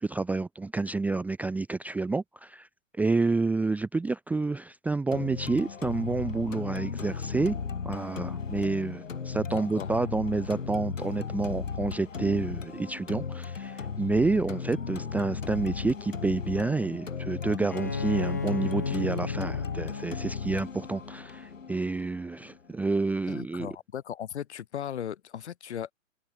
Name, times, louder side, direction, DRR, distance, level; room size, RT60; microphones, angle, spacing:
voice 1, 0.0-2.7 2.9-7.6 7.8-23.7, right 3 dB, 5° right, 0.9 m, -29 dB
sound 1, 5.1-23.1, left 5 dB, 70° left, 3.3 m, -36 dB
voice 2, 9.5-9.9 23.3-25.9, left 9 dB, 55° left, 6.5 m, -37 dB
Bowed string instrument, 17.7-21.3, left 5 dB, 15° left, 0.3 m, -34 dB
figure-of-eight pair, 115°, 40 cm